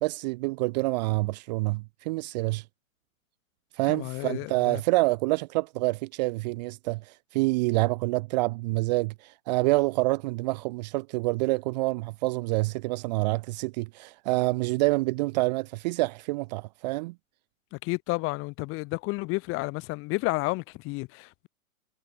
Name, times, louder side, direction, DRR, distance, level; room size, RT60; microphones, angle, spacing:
voice 1, 0.0-2.6 3.7-17.1, right 22 dB, 30° right, 0.6 m, -27 dB
voice 2, 3.9-4.8 17.7-21.5, left 24 dB, 30° left, 1.4 m, -31 dB
hypercardioid pair, 135°, 42 cm